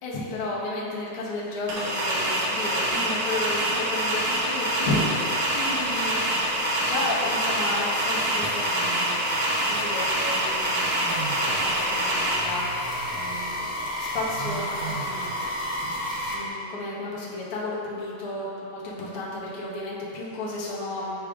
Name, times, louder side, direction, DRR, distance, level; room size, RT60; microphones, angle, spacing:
voice 1, 0.0-6.4 6.8-15.4 16.3-21.3, left 2 dB, 60° left, -6 dB, 1.5 m, -33 dB
sound 1, 1.7-12.4, right 1 dB, 65° right, 2.0 m, -26 dB
sound 2, 2.9-16.3, left 1 dB, 85° left, 1.0 m, -34 dB
sound 3, 11.1-16.5, right 4 dB, 90° right, 2.3 m, -39 dB
8.5 x 4.8 x 2.4 m, 2.5 s
omnidirectional pair, 3.5 m